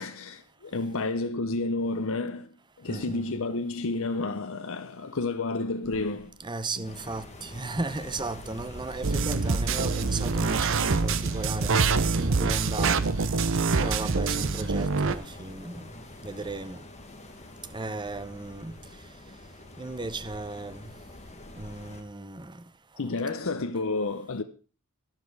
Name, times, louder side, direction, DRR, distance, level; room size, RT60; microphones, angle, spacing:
voice 1, 0.0-6.3 23.0-24.4, left 3 dB, 65° left, 0.7 m, -30 dB
voice 2, 2.9-3.4 6.4-11.7 12.2-13.1 13.8-15.9 16.2-16.8 17.7-18.7 19.8-20.8 21.6-22.6, right 3 dB, 20° right, 0.7 m, -35 dB
Walk footsteps, 5.8-13.5, equal, ahead, 0.9 m, -45 dB
sound 1, 6.8-22.0, left 2 dB, 30° left, 1.8 m, -46 dB
sound 2, 9.0-15.1, right 4 dB, 60° right, 0.8 m, -25 dB
12.0 x 11.0 x 4.7 m
head